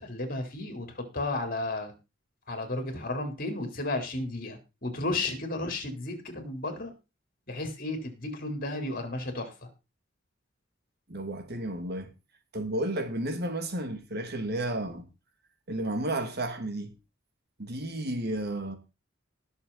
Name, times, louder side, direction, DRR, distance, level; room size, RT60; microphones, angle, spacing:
voice 1, 0.0-1.9 2.5-6.9 7.5-9.5, left 2 dB, 50° left, 3.8 m, -33 dB
voice 2, 11.1-12.1 12.5-15.1 15.7-16.9 17.6-18.8, right 1 dB, 55° right, 2.4 m, -32 dB
19.0 x 7.0 x 4.1 m
head